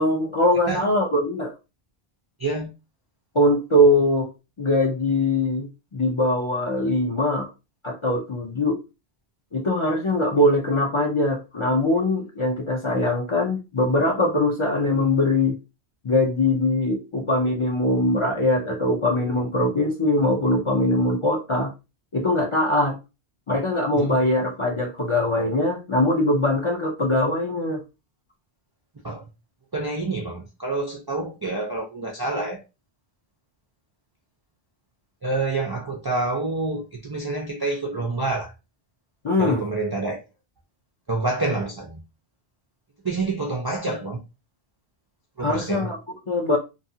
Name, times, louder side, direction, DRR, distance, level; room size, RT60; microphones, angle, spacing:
voice 1, 0.0-1.5 3.3-4.3 4.6-7.5 7.8-8.8 9.5-15.6 16.0-21.7 22.1-23.0 23.5-27.8 39.2-39.6 45.4-46.0 46.3-46.6, left 1 dB, 40° left, 0.4 m, -22 dB
voice 2, 2.4-2.7 24.0-24.2 29.0-29.3 29.7-32.6 35.2-38.5 39.4-40.2 41.1-42.0 43.0-44.2 45.4-45.9, right 3 dB, 40° right, 0.3 m, -27 dB
2.7 x 2.3 x 2.7 m
omnidirectional pair, 1.1 m